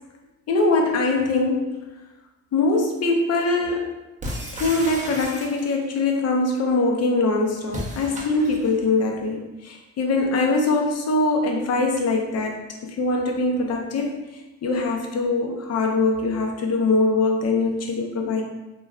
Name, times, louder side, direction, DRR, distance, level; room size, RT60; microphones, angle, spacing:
voice 1, 0.5-1.8 2.5-3.9 4.5-14.2 14.6-18.4, left 3 dB, 55° left, 1 dB, 0.6 m, -22 dB
sound 1, 4.2-5.9 7.7-8.8, right 1 dB, 25° right, 0.5 m, -34 dB
3.0 x 2.3 x 2.3 m, 1.1 s
cardioid pair, 90°, 30 cm